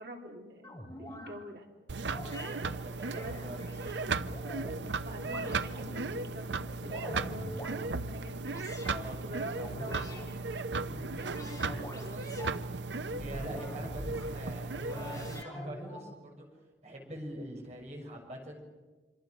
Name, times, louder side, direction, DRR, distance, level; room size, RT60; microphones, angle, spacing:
voice 1, 0.0-1.7 3.1-3.5 5.0-8.9 9.2-10.5 10.9-12.5, right 1 dB, 60° right, 2 dB, 3.6 m, -46 dB
sound 1, 0.6-1.3 2.0-2.5 3.0-4.8 5.2-6.1 6.6-7.8 8.4-9.0 9.6-10.3 10.7-12.6 13.1-14.3 14.9-16.1, left 1 dB, 15° left, 5.7 m, -44 dB
sound 2, 1.9-15.4, right 3 dB, 80° right, 0.7 m, -36 dB
voice 2, 2.4-4.0 8.8-9.7 13.2-16.5 16.8-18.6, equal, 40° right, 0 dB, 6.6 m, -44 dB
26.5 x 25.5 x 6.5 m, 1.3 s
head